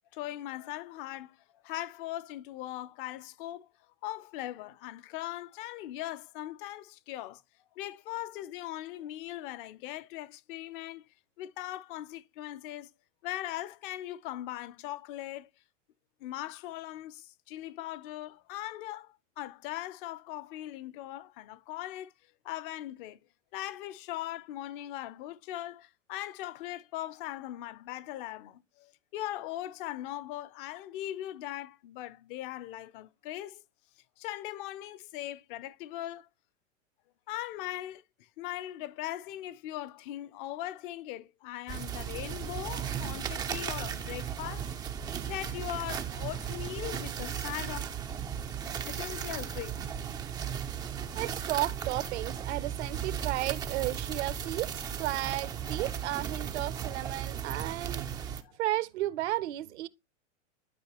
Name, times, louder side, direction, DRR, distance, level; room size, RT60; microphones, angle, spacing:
voice 1, 0.1-3.7 4.0-7.4 7.8-11.1 11.4-12.9 13.2-15.5 16.2-22.1 22.4-23.2 23.5-33.6 34.2-36.3 37.3-38.0 38.4-44.7 45.3-47.9 48.8-49.8 58.4-58.5, left 14 dB, 45° left, 0.6 m, -40 dB
sound 1, 41.7-58.4, right 8 dB, 10° right, 0.3 m, -36 dB
voice 2, 51.1-58.3 58.6-59.9, right 16 dB, 60° right, 0.7 m, -33 dB
11.0 x 4.6 x 2.9 m
hypercardioid pair, 120°, 38 cm